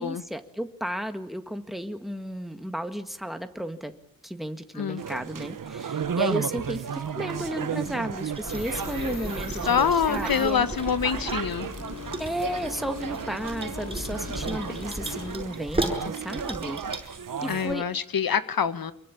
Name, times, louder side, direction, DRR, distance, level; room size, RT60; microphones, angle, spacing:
voice 1, 0.0-3.9 4.2-10.7 12.2-17.0 17.4-17.9, equal, ahead, 8 dB, 1.9 m, -33 dB
sound 1, 5.0-17.7, right 7 dB, 65° right, 1.3 m, -34 dB
sound 2, 8.3-17.2, right 2 dB, 15° right, 6.8 m, -36 dB
sound 3, 8.5-15.3, left 3 dB, 50° left, 4.9 m, -39 dB
voice 2, 9.6-11.7 17.5-18.9, left 7 dB, 80° left, 12 dB, 1.6 m, -25 dB
26.5 x 23.5 x 8.7 m, 0.67 s
wide cardioid pair, 130°, 35 cm